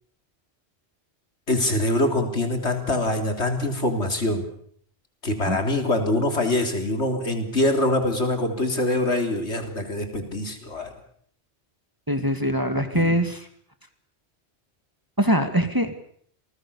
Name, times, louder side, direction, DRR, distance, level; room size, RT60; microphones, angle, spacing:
voice 1, 1.5-4.4 5.2-10.9 12.9-13.1, left 1 dB, 80° left, 5 dB, 3.9 m, -24 dB
voice 2, 12.1-13.4 15.2-15.9, equal, 20° right, 7 dB, 2.2 m, -23 dB
28.0 x 20.0 x 7.0 m, 0.62 s
omnidirectional pair, 1.1 m